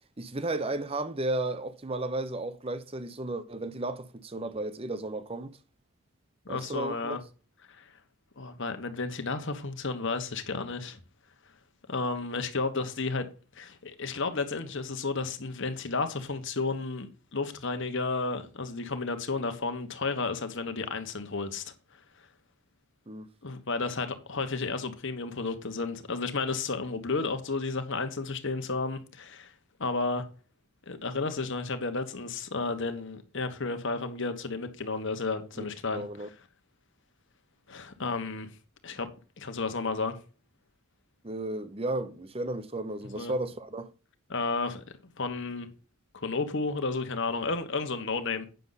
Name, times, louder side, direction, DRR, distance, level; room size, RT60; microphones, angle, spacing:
voice 1, 0.2-5.6 6.5-7.2 23.1-23.3 35.6-35.7 35.9-36.3 41.2-43.9, right 2 dB, 25° right, 0.7 m, -34 dB
voice 2, 6.4-7.2 7.7-7.8 8.4-11.0 11.9-13.3 13.5-21.7 23.4-29.5 29.8-30.2 30.9-36.3 37.7-38.5 38.8-39.1 39.4-40.2 43.2-43.3 44.3-45.7 46.1-48.5, left 3 dB, 55° left, 1.3 m, -32 dB
9.1 x 6.7 x 4.0 m
head